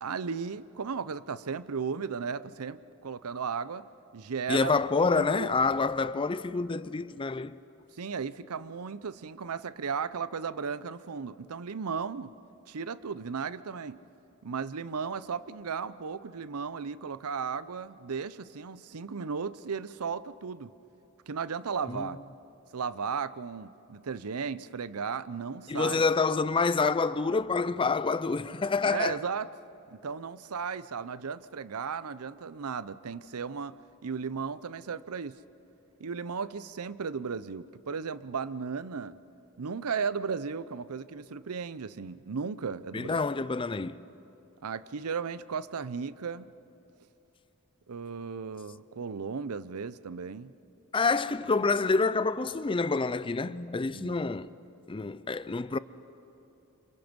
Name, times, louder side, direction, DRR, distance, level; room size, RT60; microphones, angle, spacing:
voice 1, 0.0-3.9 4.1-4.7 5.1-5.5 8.0-12.3 12.7-14.0 14.4-20.7 21.3-22.2 22.7-26.0 28.9-29.5 29.9-35.4 36.0-39.2 39.6-43.2 44.6-46.5 47.9-50.5 53.9-54.2, right 5 dB, 85° right, 0.6 m, -35 dB
voice 2, 4.5-7.6 21.9-22.1 25.7-29.1 42.9-44.1 50.9-54.5 54.9-55.8, left 4 dB, 25° left, 0.5 m, -27 dB
28.5 x 27.0 x 5.3 m
head